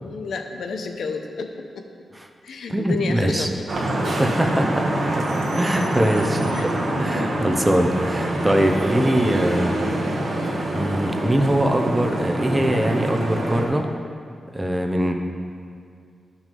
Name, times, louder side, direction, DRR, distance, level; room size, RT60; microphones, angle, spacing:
voice 1, 0.0-1.9 2.4-3.5 3.9-4.2 5.8-5.9 6.5-6.7 7.1-7.3, left 4 dB, 80° left, 4 dB, 0.8 m, -31 dB
voice 2, 2.7-3.5 4.2-5.0 5.6-6.4 7.0-9.7 10.7-13.9 14.5-15.1, right 1 dB, 10° right, 3 dB, 0.7 m, -22 dB
Vehicle horn car horn honking / Traffic noise roadway noise, 3.7-13.6, right 1 dB, 50° right, 1.4 m, -25 dB
11.5 x 6.1 x 5.3 m, 2.2 s
wide cardioid pair, 150°, 0 cm